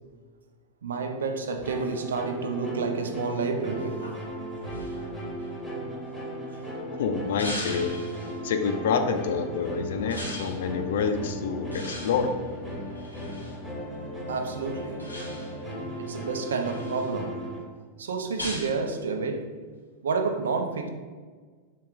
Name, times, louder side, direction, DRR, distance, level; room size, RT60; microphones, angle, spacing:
voice 1, 0.8-4.1 14.3-15.1 16.0-17.5 18.0-19.6 20.0-20.9, right 4 dB, 65° right, 0.4 m, -30 dB
sound 1, 1.6-17.6, equal, 5° right, 1.4 m, -36 dB
sound 2, 4.0-6.6 7.4-8.4 10.1-10.6 11.7-13.6 15.0-15.7 16.2-17.1 18.4-18.8, left 1 dB, 90° right, 1.0 m, -40 dB
voice 2, 6.9-7.9 8.4-12.3, left 5 dB, 60° left, 0.4 m, -27 dB
4.3 x 3.0 x 3.5 m
figure-of-eight pair, 90°, 0 cm